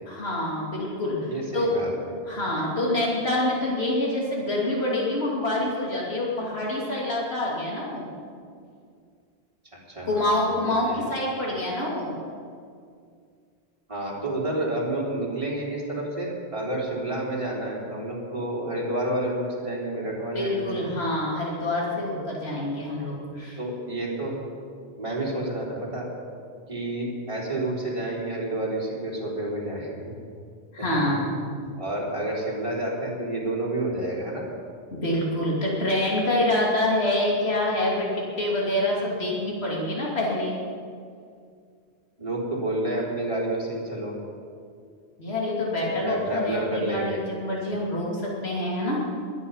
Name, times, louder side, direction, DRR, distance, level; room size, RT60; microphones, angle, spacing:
voice 1, 0.1-1.7 2.3-8.1 10.1-12.2 20.3-23.6 30.7-31.4 34.9-40.6 45.2-49.0, left 1 dB, 75° left, -4 dB, 3.0 m, -26 dB
voice 2, 1.3-2.1 9.9-11.0 13.9-20.7 23.6-24.3 25.0-26.1 26.7-30.1 30.8-31.0 31.8-34.4 42.2-44.1 46.0-47.2, right 1 dB, 30° right, -5 dB, 3.7 m, -29 dB
22.5 x 9.7 x 5.7 m, 2.2 s
omnidirectional pair, 1.1 m